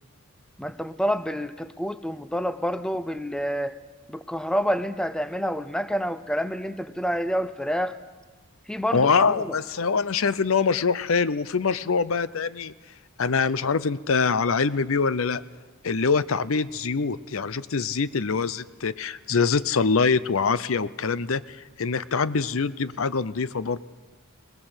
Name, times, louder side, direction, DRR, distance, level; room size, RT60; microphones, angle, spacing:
voice 1, 0.6-3.8 4.1-8.0 8.7-9.5, equal, 5° left, 13 dB, 0.6 m, -28 dB
voice 2, 8.9-12.7 13.2-15.4 15.8-23.8, left 5 dB, 70° left, 17 dB, 0.6 m, -24 dB
20.0 x 19.0 x 7.9 m, 1.2 s
head